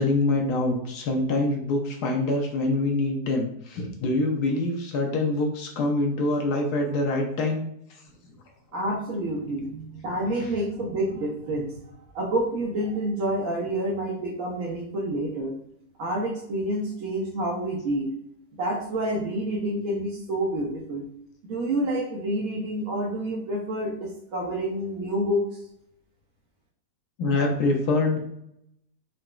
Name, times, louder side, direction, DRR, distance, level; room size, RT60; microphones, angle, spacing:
voice 1, 0.0-7.6 27.2-28.2, left 2 dB, 70° left, 1 dB, 1.1 m, -25 dB
voice 2, 8.7-11.7 12.1-15.5 16.0-18.1 18.6-21.0 21.4-25.4, right 1 dB, 65° right, -2 dB, 0.9 m, -28 dB
3.9 x 2.2 x 2.3 m, 0.76 s
omnidirectional pair, 1.8 m